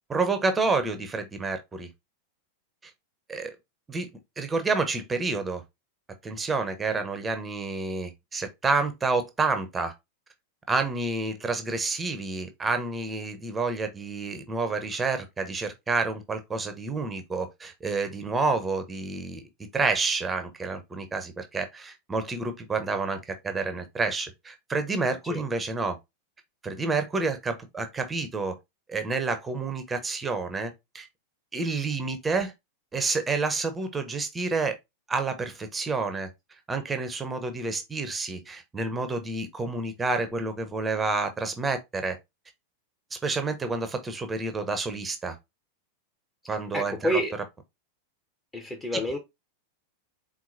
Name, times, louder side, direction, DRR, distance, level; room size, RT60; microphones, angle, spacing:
voice 1, 0.1-1.9 3.3-3.6 3.9-4.1 4.4-5.6 6.2-9.9 10.7-19.4 19.7-26.0 26.6-28.5 28.9-31.1 31.5-32.5 32.9-34.8 35.1-36.3 36.7-42.2 43.1-45.4 46.5-47.2, right 3 dB, 15° right, 0.7 m, -29 dB
voice 2, 46.7-47.3 48.5-49.2, equal, 15° left, 0.8 m, -28 dB
4.5 x 3.7 x 2.6 m
figure-of-eight pair, 90°, 0 cm